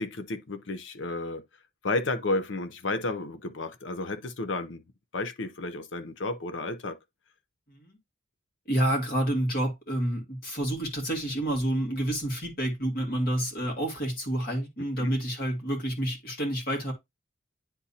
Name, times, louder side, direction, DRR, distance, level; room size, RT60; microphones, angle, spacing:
voice 1, 0.0-1.4 1.8-4.8 5.1-7.0 15.0-15.1, left 2 dB, 65° left, 0.7 m, -32 dB
voice 2, 8.7-16.9, right 1 dB, 50° left, 2.1 m, -29 dB
9.9 x 3.7 x 2.8 m
head